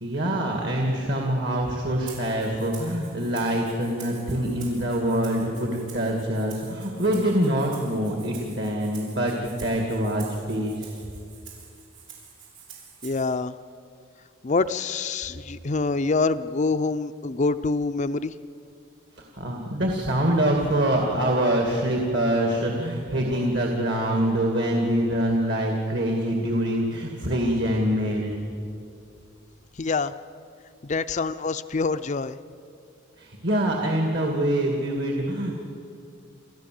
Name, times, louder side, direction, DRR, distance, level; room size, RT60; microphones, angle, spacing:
voice 1, 0.0-10.9 19.4-28.3 33.2-35.6, right 1 dB, 60° right, 1 dB, 2.2 m, -25 dB
Rattle (instrument), 2.1-13.3, right 7 dB, 90° right, 6.8 m, -47 dB
voice 2, 13.0-13.5 14.4-18.3 29.8-30.1 30.8-32.4, left 3 dB, 35° left, 11 dB, 0.5 m, -26 dB
29.0 x 14.0 x 7.7 m, 2.4 s
head